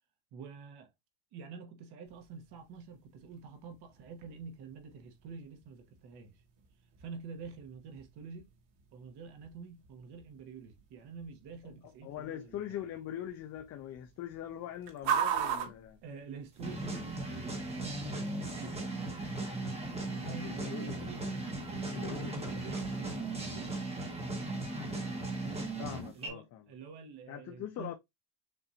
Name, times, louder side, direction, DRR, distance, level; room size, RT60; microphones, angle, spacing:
voice 1, 0.3-0.9 1.3-6.4 7.0-8.5 8.9-12.6 16.0-18.8 20.1-23.8 26.1-27.9, right 5 dB, 60° right, 1.4 m, -48 dB
sound 1, 2.0-16.9, right 8 dB, 80° right, 1.5 m, -42 dB
voice 2, 12.0-16.0 20.3-21.1 21.9-22.6 25.8-26.6 27.3-27.9, left 11 dB, 40° left, 0.4 m, -42 dB
sound 2, 16.6-26.3, right 2 dB, 15° right, 1.0 m, -37 dB
6.6 x 2.5 x 2.8 m
cardioid pair, 165°, 45 cm